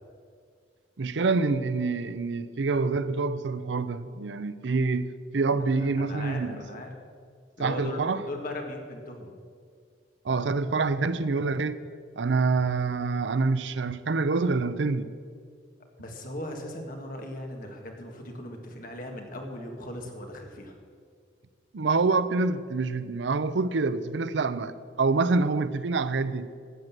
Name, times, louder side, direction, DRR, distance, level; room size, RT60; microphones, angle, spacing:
voice 1, 1.0-6.6 7.6-8.2 10.2-11.8 12.2-15.1 21.7-26.5, right 3 dB, 85° right, 0.6 m, -26 dB
voice 2, 5.5-6.9 7.6-9.4 16.0-20.7, left 1 dB, 50° left, 1.8 m, -38 dB
13.0 x 7.8 x 7.4 m
head